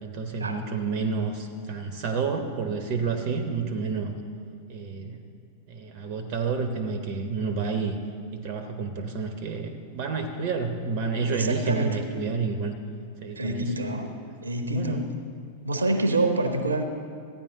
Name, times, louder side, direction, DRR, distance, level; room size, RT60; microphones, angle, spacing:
voice 1, 0.0-4.2 4.7-5.2 5.7-8.0 8.3-12.7 13.2-13.7 14.6-15.0, right 4 dB, 45° right, 7 dB, 0.7 m, -29 dB
voice 2, 11.3-12.0 13.4-15.1 15.6-16.8, right 2 dB, 75° right, 7 dB, 0.8 m, -27 dB
14.0 x 10.0 x 3.8 m, 2.3 s
figure-of-eight pair, 90°, 0 cm